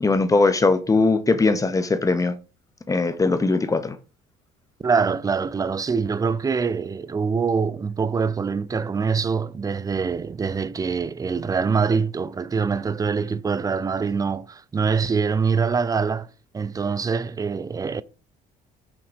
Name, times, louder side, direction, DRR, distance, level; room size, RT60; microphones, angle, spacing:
voice 1, 0.0-2.3 2.9-3.9, left 3 dB, 20° left, 0.8 m, -20 dB
voice 2, 4.8-16.3 16.5-18.0, right 5 dB, 20° right, 0.4 m, -24 dB
6.1 x 3.7 x 5.0 m
cardioid pair, 110°, 17 cm